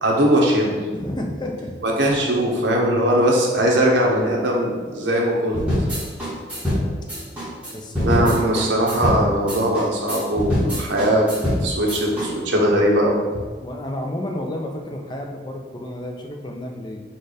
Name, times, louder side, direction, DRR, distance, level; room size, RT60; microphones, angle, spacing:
voice 1, 0.0-0.8 1.8-5.7 8.0-11.3 11.6-13.4, right 1 dB, 75° right, -2 dB, 1.0 m, -20 dB
voice 2, 0.9-1.8 7.7-8.8 13.6-17.0, left 1 dB, 25° left, 2 dB, 0.4 m, -31 dB
sound 1, 5.5-12.3, left 1 dB, 5° right, 1.2 m, -24 dB
4.4 x 2.4 x 4.8 m, 1.5 s
head